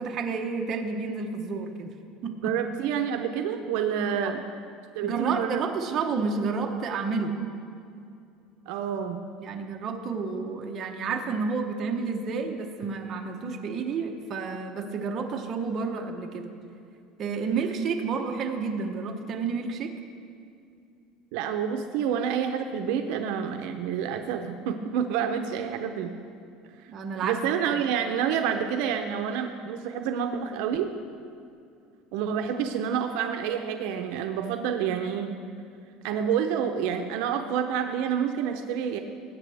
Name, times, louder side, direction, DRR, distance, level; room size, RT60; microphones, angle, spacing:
voice 1, 0.0-1.9 2.2-2.6 4.2-4.3 5.0-7.3 9.4-16.5 17.2-19.9 26.9-27.8, right 5 dB, 30° right, 2 dB, 0.9 m, -30 dB
voice 2, 2.4-4.4 4.9-5.6 8.7-9.2 21.3-26.1 27.2-30.9 32.1-35.3 36.0-39.0, right 8 dB, 65° right, 5 dB, 0.6 m, -28 dB
19.5 x 8.5 x 3.4 m, 2.5 s
cardioid pair, 165°, 0 cm